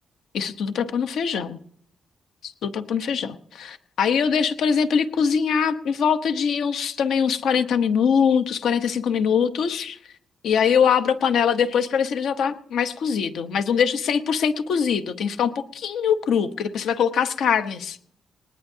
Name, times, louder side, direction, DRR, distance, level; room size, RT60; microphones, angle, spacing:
voice 1, 0.3-1.6 2.4-10.0 10.4-18.0, left 7 dB, 75° left, 10 dB, 1.0 m, -22 dB
20.0 x 19.5 x 2.8 m, 0.65 s
wide cardioid pair, 170°, 0 cm